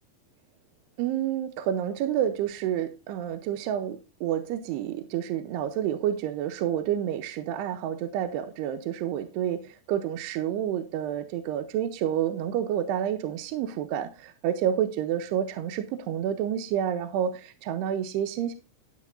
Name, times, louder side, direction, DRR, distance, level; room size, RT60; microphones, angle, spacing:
voice 1, 1.0-18.6, right 10 dB, 80° right, 2.7 m, -29 dB
11.0 x 10.5 x 2.5 m
omnidirectional pair, 4.8 m